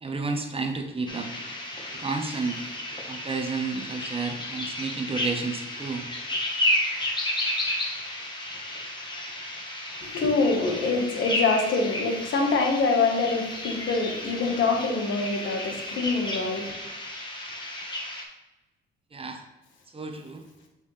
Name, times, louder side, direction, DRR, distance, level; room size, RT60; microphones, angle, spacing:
voice 1, 0.0-1.3 2.0-2.6 3.1-6.0 19.1-19.4 19.9-20.4, right 4 dB, 30° right, 5 dB, 1.0 m, -31 dB
sound 1, 1.1-18.2, left 1 dB, 25° left, 1.5 m, -32 dB
voice 2, 10.0-16.7, left 3 dB, 75° left, 1 dB, 1.5 m, -25 dB
6.2 x 5.5 x 3.4 m, 1.0 s
cardioid pair, 90°, 20 cm